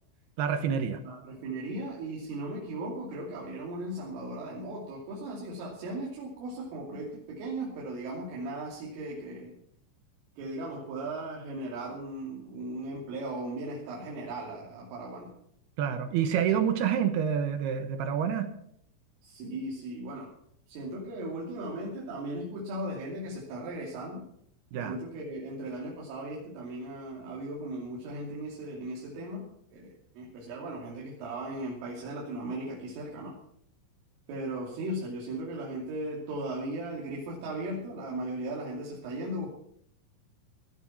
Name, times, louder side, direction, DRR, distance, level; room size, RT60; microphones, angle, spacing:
voice 1, 0.4-1.0 15.8-18.5 24.7-25.0, right 8 dB, 70° right, 9 dB, 2.7 m, -28 dB
voice 2, 1.1-9.5 10.4-15.3 19.2-20.3 20.7-24.2 24.9-29.5 29.7-33.4 34.3-39.5, right 1 dB, 90° right, -4 dB, 5.4 m, -37 dB
18.5 x 12.0 x 5.9 m, 0.69 s
omnidirectional pair, 5.6 m